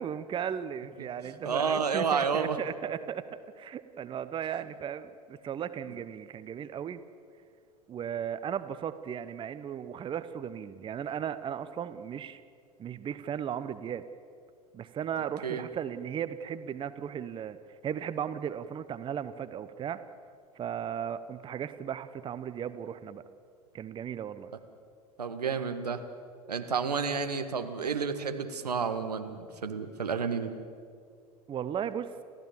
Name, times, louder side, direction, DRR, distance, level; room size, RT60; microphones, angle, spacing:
voice 1, 0.0-3.3 3.6-7.0 7.9-12.4 12.8-14.0 14.7-17.6 17.8-20.0 20.6-23.2 23.7-24.5 31.5-32.1, right 8 dB, 25° right, 13 dB, 0.9 m, -36 dB
voice 2, 1.4-2.6 15.4-15.7 25.2-26.0 26.5-30.5, right 5 dB, 80° right, 7 dB, 1.7 m, -30 dB
30.0 x 15.0 x 7.2 m, 2.2 s
figure-of-eight pair, 80°, 20 cm